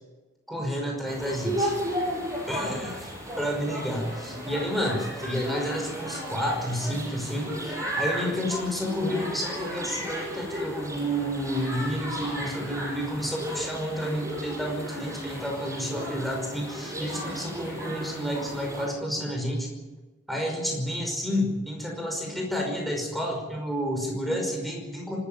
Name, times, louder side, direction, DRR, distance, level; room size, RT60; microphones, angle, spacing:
voice 1, 0.5-1.8 2.5-19.7 20.3-25.2, equal, ahead, 0 dB, 5.4 m, -30 dB
sound 1, 1.1-18.9, equal, 15° right, 6.0 m, -34 dB
25.0 x 13.5 x 9.0 m, 1.2 s
head